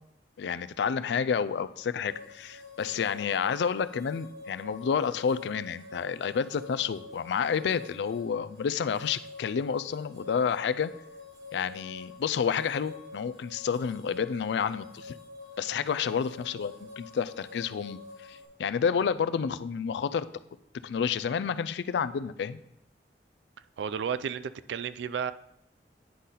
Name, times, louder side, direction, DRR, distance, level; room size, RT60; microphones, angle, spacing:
voice 1, 0.4-10.9 11.5-15.2 15.6-18.0 18.3-20.3 20.8-22.6, left 6 dB, 70° left, 14 dB, 0.3 m, -30 dB
sound 1, 2.0-18.4, left 3 dB, 65° right, 2.6 m, -47 dB
voice 2, 23.8-25.3, right 7 dB, 85° right, 15 dB, 0.3 m, -32 dB
9.9 x 3.9 x 4.1 m, 0.83 s
head